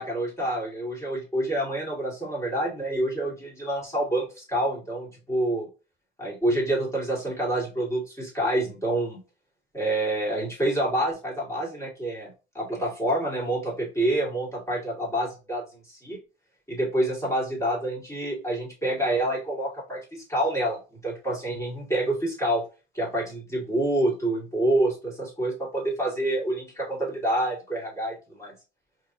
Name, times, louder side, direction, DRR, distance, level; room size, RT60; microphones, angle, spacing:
voice 1, 0.0-5.7 6.2-9.2 9.7-16.2 16.7-22.6 22.9-28.5, right 1 dB, 15° left, -4 dB, 2.1 m, -27 dB
4.3 x 3.0 x 2.6 m, 0.31 s
cardioid pair, 90°, 20 cm